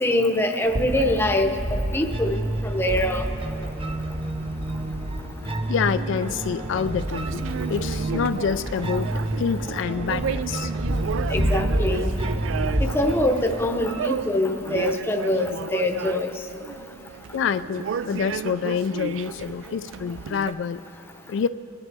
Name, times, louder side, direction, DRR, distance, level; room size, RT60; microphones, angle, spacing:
voice 1, 0.0-3.3 11.3-12.1 12.8-16.3, left 1 dB, 10° left, 4 dB, 0.8 m, -24 dB
sound 1, 0.6-12.8, equal, 45° right, 1.3 m, -30 dB
sound 2, 2.1-15.1, right 2 dB, 30° right, 0.6 m, -32 dB
voice 2, 5.7-7.4 7.7-10.7 17.3-20.8 21.3-21.5, left 7 dB, 65° left, 11 dB, 0.3 m, -27 dB
sound 3, 5.9-20.5, right 7 dB, 75° right, 0.3 m, -34 dB
29.0 x 11.0 x 3.4 m, 2.8 s
head